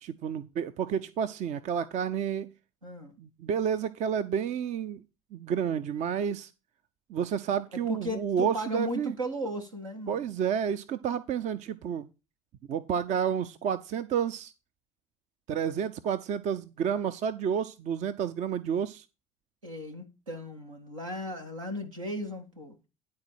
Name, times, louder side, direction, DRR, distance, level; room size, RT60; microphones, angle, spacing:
voice 1, 0.0-2.5 3.2-5.0 5.3-6.5 7.1-9.2 10.1-12.1 12.7-14.5 15.5-19.1, right 8 dB, 45° right, 0.6 m, -30 dB
voice 2, 2.8-3.1 7.7-10.3 19.6-22.8, equal, 85° right, 1.7 m, -36 dB
10.5 x 4.3 x 6.3 m
figure-of-eight pair, 60°, 17 cm